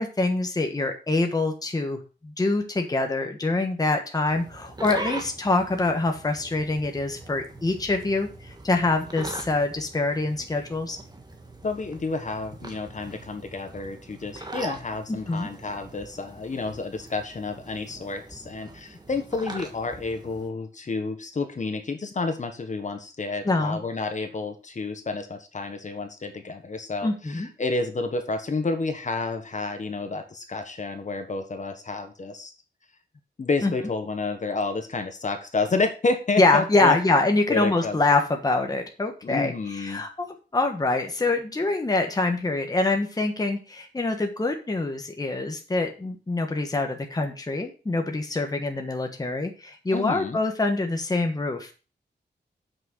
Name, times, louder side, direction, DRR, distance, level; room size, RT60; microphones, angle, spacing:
voice 1, 0.0-11.0 15.1-15.5 23.4-23.8 27.0-27.5 33.6-33.7 36.4-40.3 40.5-51.7, left 2 dB, 20° left, 3 dB, 1.3 m, -25 dB
sound 1, 4.3-20.5, right 2 dB, 25° right, 1.5 m, -41 dB
voice 2, 11.6-32.5 33.4-37.0 37.5-38.0 39.2-40.0 49.9-50.4, left 3 dB, 45° left, 6 dB, 1.4 m, -30 dB
7.7 x 6.2 x 6.2 m, 0.34 s
wide cardioid pair, 155°, 18 cm